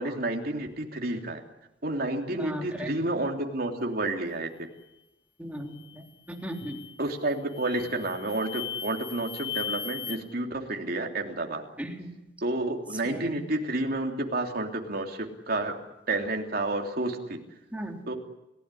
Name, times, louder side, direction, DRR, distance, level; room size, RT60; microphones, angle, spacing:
voice 1, 0.0-1.4 1.8-4.7 7.0-11.6 12.4-15.8 16.1-17.4 18.1-18.2, right 2 dB, 55° right, 2 dB, 3.2 m, -30 dB
voice 2, 2.3-2.9 5.4-6.8 11.8-12.1 13.1-13.4 17.7-18.0, equal, 10° right, 1 dB, 3.7 m, -37 dB
sound 1, 5.7-6.0 6.5-7.0 7.5-10.2, left 8 dB, 30° left, 2.2 m, -37 dB
29.5 x 17.0 x 9.9 m, 0.93 s
head